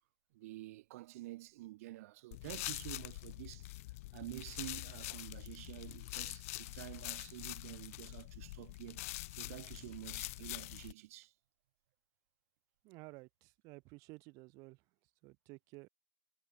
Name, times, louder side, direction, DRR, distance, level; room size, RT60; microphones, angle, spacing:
voice 1, 0.3-3.7 4.1-9.0 9.3-11.3, right 18 dB, 75° right, 1.1 m, -49 dB
sound 1, 2.3-10.9, left 19 dB, 75° left, 0.6 m, -45 dB
voice 2, 12.8-15.9, right 25 dB, 45° right, 0.6 m, -54 dB
supercardioid pair, 165°, 8 cm